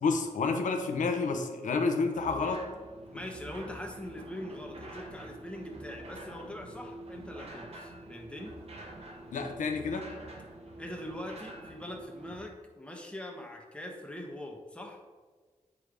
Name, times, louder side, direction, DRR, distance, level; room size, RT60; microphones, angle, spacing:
voice 1, 0.0-2.6 9.3-10.1, left 4 dB, 85° left, 4 dB, 0.7 m, -29 dB
sound 1, 2.1-12.4, right 2 dB, 55° right, 1.2 m, -46 dB
voice 2, 3.1-8.6 10.8-15.0, left 1 dB, 10° left, 1 dB, 1.2 m, -42 dB
8.5 x 3.3 x 5.0 m, 1.4 s
wide cardioid pair, 85°, 13 cm